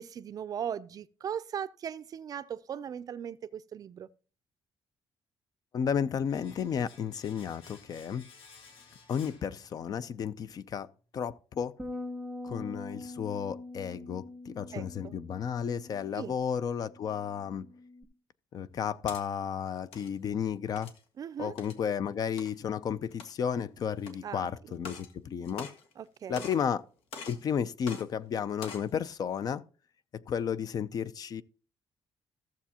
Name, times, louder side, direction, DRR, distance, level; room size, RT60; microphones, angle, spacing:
voice 1, 0.0-4.1 14.7-15.2 16.1-16.3 21.2-21.5 24.2-24.5 26.0-26.5, right 8 dB, 40° right, 0.5 m, -38 dB
voice 2, 5.7-8.2 9.1-10.9 11.1-11.8 12.4-17.7 18.5-20.9 21.4-25.7 26.3-26.8 27.3-29.6 30.1-31.4, left 7 dB, 40° left, 0.5 m, -33 dB
Domestic sounds home sounds, 6.3-10.1 10.4-10.5, left 5 dB, 65° left, 2.2 m, -55 dB
sound 1, 11.8-18.0, left 2 dB, 5° right, 0.8 m, -44 dB
sound 2, 18.7-19.2 19.8-20.1 20.8-21.0 21.6-21.8 22.4-22.5 23.1-23.5 24.0-24.1 24.7-25.1 25.4-26.1 26.3-26.7 27.1-27.4 27.8-28.0 28.5-28.9, left 5 dB, 85° left, 1.7 m, -44 dB
14.5 x 7.2 x 2.9 m
cardioid pair, 150°, 10 cm